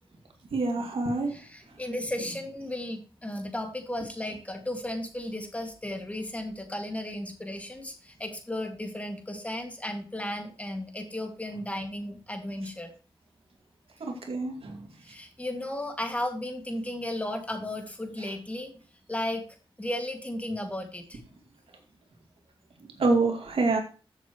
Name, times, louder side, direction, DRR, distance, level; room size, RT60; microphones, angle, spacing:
voice 1, 0.5-1.3 14.0-14.9 22.8-23.8, right 3 dB, 75° right, 3 dB, 2.3 m, -26 dB
voice 2, 1.3-12.9 15.0-18.8 19.1-19.4 19.8-21.2, left 1 dB, 15° left, 4 dB, 2.2 m, -34 dB
14.0 x 7.3 x 3.1 m, 0.36 s
wide cardioid pair, 100°, 10 cm